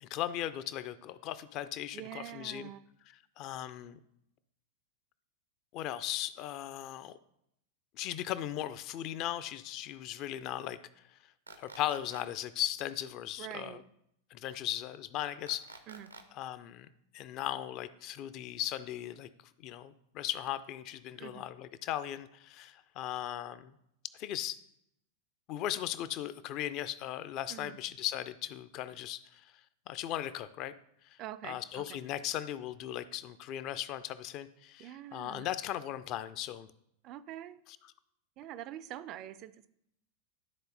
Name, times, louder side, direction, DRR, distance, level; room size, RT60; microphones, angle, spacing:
voice 1, 0.0-2.7 3.4-4.0 5.7-7.1 7.9-10.8 11.6-13.8 14.3-15.7 16.3-16.9 17.1-19.3 19.6-23.7 24.2-24.6 25.5-29.4 29.9-30.7 31.4-36.7, left 12 dB, 40° left, 14 dB, 0.4 m, -37 dB
voice 2, 1.9-2.9 13.4-13.8 15.9-16.1 21.1-21.4 27.5-27.8 31.2-32.0 34.8-35.5 37.0-37.6 38.4-39.7, right 13 dB, 35° right, 15 dB, 0.3 m, -45 dB
sound 1, 11.5-12.2 15.5-16.2, right 3 dB, 80° right, 0.7 m, -49 dB
12.0 x 3.9 x 2.6 m, 0.77 s
figure-of-eight pair, 90°, 0 cm